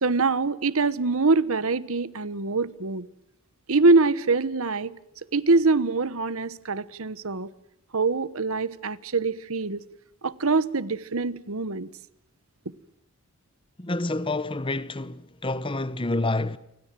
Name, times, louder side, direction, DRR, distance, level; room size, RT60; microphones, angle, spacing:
voice 1, 0.0-3.1 3.7-5.0 5.3-7.5 7.9-9.8 10.2-11.9 12.6-12.7, right 3 dB, 70° right, 1.2 m, -24 dB
voice 2, 13.8-16.6, left 2 dB, 25° left, 1.0 m, -28 dB
30.0 x 24.0 x 7.6 m
head